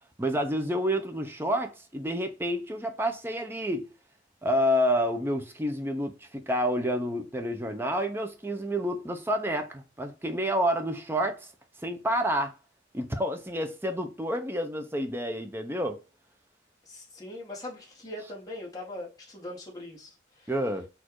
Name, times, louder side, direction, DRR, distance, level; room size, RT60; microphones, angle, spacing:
voice 1, 0.2-3.9 4.4-11.5 11.8-12.5 12.9-16.0 20.5-20.9, equal, 10° right, 0.6 m, -29 dB
voice 2, 16.8-20.5, left 1 dB, 20° left, 1.5 m, -41 dB
4.3 x 2.7 x 4.6 m
head